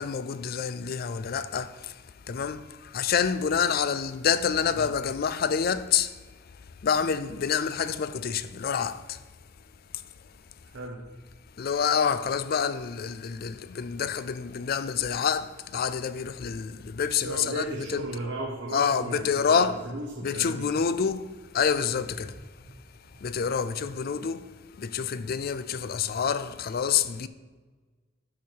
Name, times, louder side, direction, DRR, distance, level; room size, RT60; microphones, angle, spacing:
voice 1, 0.0-6.2 6.8-9.2 11.6-18.1 18.7-19.7 20.2-22.4 23.2-24.5 24.8-27.3, left 7 dB, 45° left, 0.4 m, -27 dB
voice 2, 10.6-11.0 17.2-20.7 23.1-23.2, right 2 dB, 60° right, 1.0 m, -35 dB
12.0 x 4.6 x 4.6 m
head